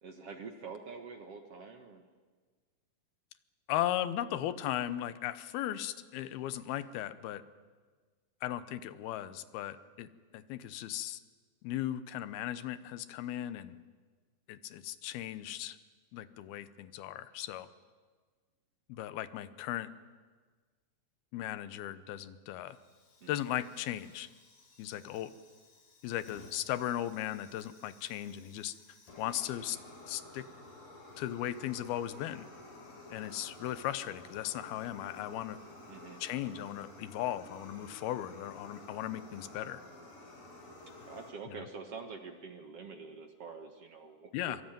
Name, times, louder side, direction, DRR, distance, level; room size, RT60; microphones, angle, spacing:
voice 1, 0.0-2.0 23.2-23.4 35.9-36.2 41.0-44.6, right 5 dB, 50° right, 5 dB, 2.0 m, -46 dB
voice 2, 3.7-7.4 8.4-11.2 11.6-13.8 14.5-15.8 16.1-17.7 18.9-19.9 21.3-22.8 23.3-24.3 24.8-25.3 26.0-28.7 29.2-29.8 30.1-30.5 31.2-32.5 33.1-35.6 36.2-39.8 41.5-41.7 44.3-44.6, left 12 dB, 85° left, 14 dB, 2.9 m, -37 dB
Fire, 22.7-41.3, left 2 dB, 65° left, 6.3 m, -53 dB
25.0 x 24.0 x 9.2 m, 1.4 s
omnidirectional pair, 4.3 m